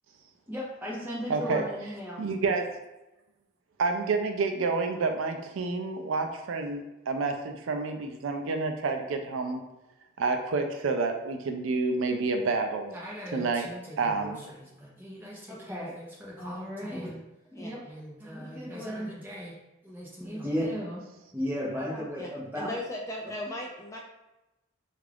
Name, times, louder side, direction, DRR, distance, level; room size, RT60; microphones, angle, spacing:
voice 1, 0.5-2.2 12.9-17.2 17.5-19.6 19.8-21.0 21.3-22.7, equal, 10° right, -6 dB, 0.8 m, -36 dB
voice 2, 1.3-1.6 2.2-2.7 3.8-9.6 10.2-12.9 13.3-13.7 14.0-14.4, right 4 dB, 70° right, 5 dB, 0.4 m, -29 dB
voice 3, 22.6-24.0, left 1 dB, 15° left, -2 dB, 0.3 m, -37 dB
3.5 x 2.4 x 3.3 m, 0.97 s
head